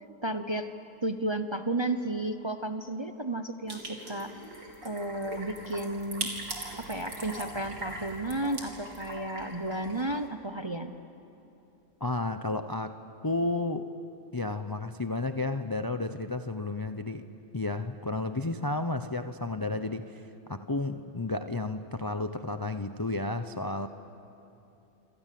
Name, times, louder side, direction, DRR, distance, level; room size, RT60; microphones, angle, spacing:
voice 1, 0.2-0.7 1.0-4.3 4.8-6.3 6.8-10.9, right 1 dB, 25° right, 8 dB, 0.6 m, -33 dB
sound 1, 3.7-10.3, right 2 dB, 70° right, 3.6 m, -40 dB
voice 2, 12.0-13.0 13.2-13.9 14.3-17.2 17.5-23.9, left 2 dB, 30° left, 9 dB, 0.4 m, -32 dB
26.5 x 26.5 x 7.6 m, 2.9 s
omnidirectional pair, 1.6 m